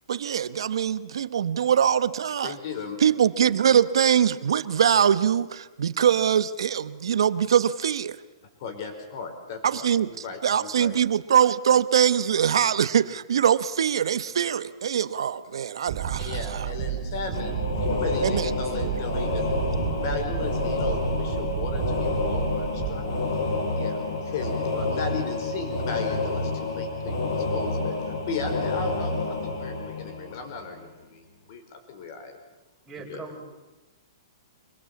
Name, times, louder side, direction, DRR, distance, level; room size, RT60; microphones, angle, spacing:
voice 1, 0.1-2.5 3.0-8.2 9.6-10.1 10.4-16.7 18.2-18.5 18.8-19.0, right 8 dB, 75° right, 14 dB, 1.1 m, -23 dB
voice 2, 2.4-3.0 8.6-9.9 10.2-11.0 16.2-19.5 19.8-23.1 23.7-24.6 24.8-31.2 31.5-32.3 33.0-33.3, left 5 dB, 40° left, 6 dB, 5.0 m, -36 dB
sound 1, 15.9-23.6, right 10 dB, 45° right, 3.1 m, -32 dB
sound 2, 17.3-30.8, left 3 dB, 60° left, 7.2 m, -29 dB
voice 3, 32.8-33.4, right 5 dB, 10° right, -3 dB, 5.2 m, -39 dB
24.5 x 21.0 x 8.5 m, 1.1 s
hypercardioid pair, 165°, 3 cm